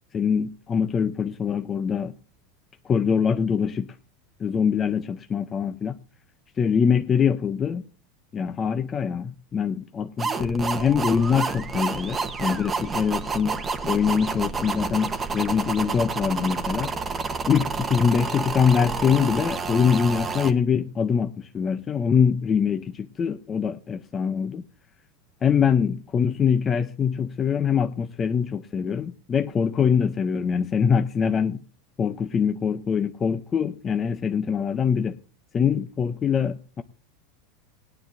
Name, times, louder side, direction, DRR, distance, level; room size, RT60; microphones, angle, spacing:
voice 1, 0.1-2.1 2.8-3.9 4.4-6.0 6.6-7.8 8.3-13.6 13.8-16.9 17.5-24.6 25.4-31.6 32.0-35.2 35.5-36.8, left 7 dB, 15° left, 8 dB, 0.5 m, -23 dB
sound 1, 10.2-20.5, right 4 dB, 15° right, 1.0 m, -29 dB
20.0 x 9.7 x 2.6 m, 0.36 s
supercardioid pair, 170°, 0 cm